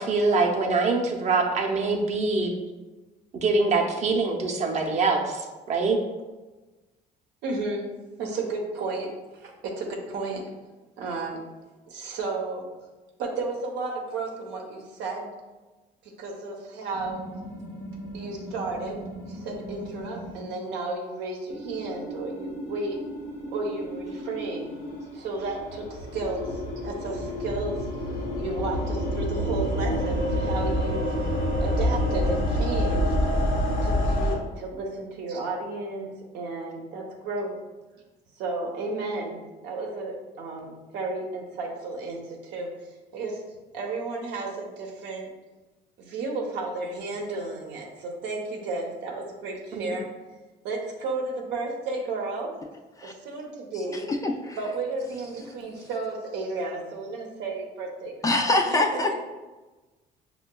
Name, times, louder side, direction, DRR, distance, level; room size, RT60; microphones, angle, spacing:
voice 1, 0.0-2.5 3.3-6.0 49.7-49.9, right 3 dB, 45° right, 2 dB, 0.6 m, -24 dB
voice 2, 7.4-7.9 8.2-10.4 11.0-11.4 11.9-12.7 13.2-15.3 16.0-17.2 18.1-23.0 23.5-24.7 25.1-27.9 28.4-31.1 31.6-33.1 33.8-36.1 36.3-37.6 38.4-42.7 43.1-43.4 43.7-45.3 46.0-50.1 50.6-52.6 53.0-54.1 54.6-59.2, right 3 dB, 85° right, 1 dB, 0.7 m, -33 dB
sound 1, 16.9-20.4 21.5-25.0 26.1-29.3 30.0-32.4, left 2 dB, 85° left, 0.8 m, -37 dB
sound 2, 24.7-34.4, equal, 55° left, 0.7 m, -27 dB
voice 3, 54.2-54.6 58.2-59.1, left 2 dB, 20° left, 2 dB, 0.3 m, -24 dB
5.5 x 2.2 x 2.2 m, 1.2 s
cardioid pair, 110°, 17 cm